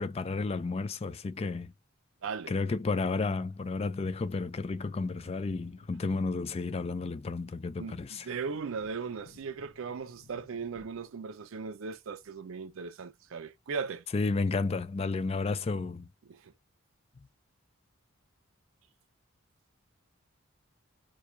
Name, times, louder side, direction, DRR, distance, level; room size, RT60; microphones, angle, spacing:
voice 1, 0.0-1.7 2.5-8.3 14.1-16.1, left 3 dB, 30° left, 0.3 m, -32 dB
voice 2, 2.2-2.5 7.8-14.0 16.3-16.5, right 5 dB, 70° right, 0.5 m, -38 dB
Wind / Thunder, 4.4-12.7 13.0-13.1, left 3 dB, 65° left, 0.7 m, -60 dB
4.6 x 2.3 x 2.5 m
head